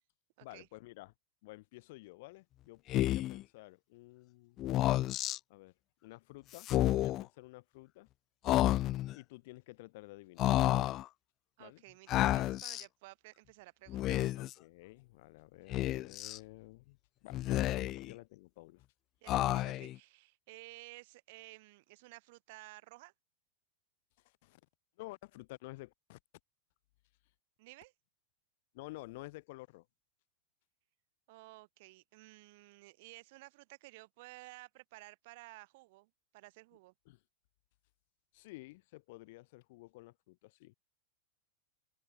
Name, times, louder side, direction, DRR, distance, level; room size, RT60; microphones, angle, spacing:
voice 1, 0.4-1.1 1.4-4.6 5.5-5.7 6.0-6.7 7.0-8.1 9.1-10.6 11.6-11.8 14.4-18.9 24.2-24.6 25.0-26.2 28.7-29.9 37.1-37.2 38.3-40.7, left 21 dB, 50° left, 3.9 m, -51 dB
Speech, 2.9-3.4 4.6-5.4 6.6-7.2 8.4-9.1 10.4-11.0 12.1-12.8 13.9-14.5 15.7-16.4 17.3-18.1 19.3-20.0, left 15 dB, 35° left, 0.6 m, -30 dB
voice 2, 11.6-14.2 19.2-23.1 27.6-27.9 31.3-36.9, right 22 dB, 50° right, 7.1 m, -54 dB
open air
figure-of-eight pair, 90°, 0 cm